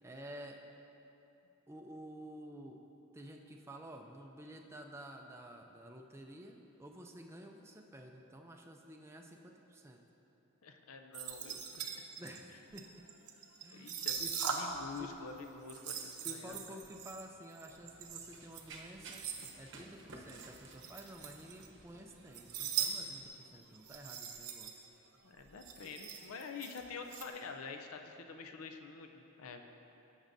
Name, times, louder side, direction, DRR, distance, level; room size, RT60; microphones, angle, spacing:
voice 1, 0.0-0.6 1.7-2.8 3.1-10.0 12.2-13.0 13.6-14.4 15.0-15.1 16.2-24.9, right 1 dB, 10° right, 2 dB, 0.4 m, -51 dB
voice 2, 10.6-11.9 13.7-14.2 14.5-16.6 25.2-29.6, left 5 dB, 65° left, 5 dB, 0.5 m, -47 dB
sound 1, 11.1-15.0 15.3-19.5 20.3-21.8 22.1-23.0 23.2-23.3 23.7-24.8 25.1-25.2 25.4-27.3, right 7 dB, 90° right, 0.8 m, -41 dB
Run, 17.7-23.3, right 3 dB, 55° right, 0.9 m, -55 dB
15.0 x 6.2 x 2.6 m, 2.9 s
head